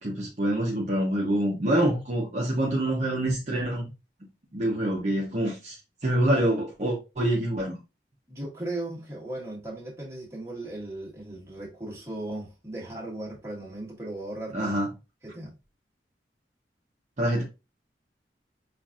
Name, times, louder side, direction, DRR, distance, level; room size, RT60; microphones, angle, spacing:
voice 1, 0.0-3.9 4.5-7.8 14.5-14.9 17.2-17.4, right 1 dB, 40° right, 0.7 m, -26 dB
voice 2, 8.3-14.8 15.2-15.5, right 1 dB, 15° right, 1.3 m, -37 dB
5.7 x 2.5 x 2.4 m
head